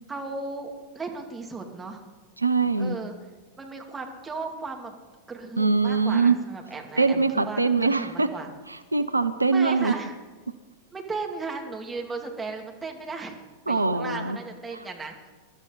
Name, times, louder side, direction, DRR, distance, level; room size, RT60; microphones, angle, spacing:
voice 1, 0.1-2.0 2.8-3.1 3.6-4.9 5.3-8.5 9.5-10.2 10.9-13.4 13.7-15.3, right 3 dB, 15° right, 1 dB, 2.7 m, -36 dB
voice 2, 2.4-3.0 5.6-6.4 7.0-8.3 8.7-9.9 13.7-14.4, right 4 dB, 85° right, 11 dB, 0.7 m, -23 dB
22.5 x 12.5 x 4.1 m, 1.4 s
figure-of-eight pair, 95°, 0 cm